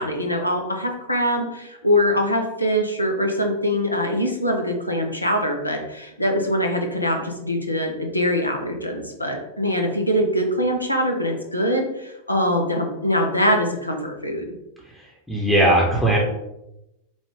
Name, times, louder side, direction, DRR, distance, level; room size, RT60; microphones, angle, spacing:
voice 1, 0.0-14.5, equal, 85° left, 3 dB, 0.7 m, -23 dB
voice 2, 14.9-16.2, right 1 dB, 5° left, -3 dB, 0.9 m, -19 dB
5.1 x 2.4 x 3.4 m, 0.91 s
figure-of-eight pair, 90°, 0 cm